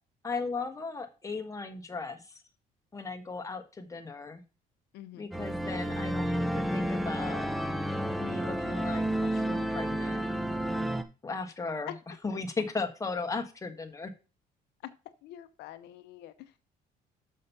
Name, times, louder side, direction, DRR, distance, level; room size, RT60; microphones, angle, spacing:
voice 1, 0.2-2.4 2.9-4.4 5.2-7.4 8.2-10.2 11.2-11.9 12.2-14.1, left 4 dB, 20° left, 6 dB, 1.4 m, -36 dB
voice 2, 4.9-5.3 11.9-12.0 15.2-16.7, left 12 dB, 80° left, 12 dB, 0.7 m, -46 dB
sound 1, 5.3-11.0, right 1 dB, ahead, 0.7 m, -31 dB
6.5 x 5.6 x 5.7 m, 0.32 s
cardioid pair, 110°, 17 cm